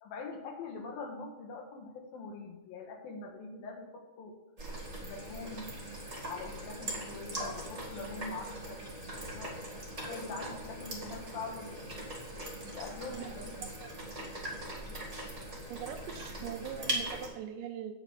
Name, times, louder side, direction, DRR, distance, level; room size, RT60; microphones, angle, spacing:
voice 1, 0.0-4.4 5.0-5.7 6.3-8.9 9.3-9.6 10.1-11.8 12.6-13.6, left 3 dB, 80° left, 2 dB, 3.1 m, -43 dB
sound 1, 4.6-17.3, right 1 dB, 20° right, 1.1 m, -41 dB
voice 2, 15.7-17.9, right 9 dB, 80° right, 6 dB, 2.2 m, -41 dB
8.9 x 5.1 x 6.7 m, 1.0 s
omnidirectional pair, 4.2 m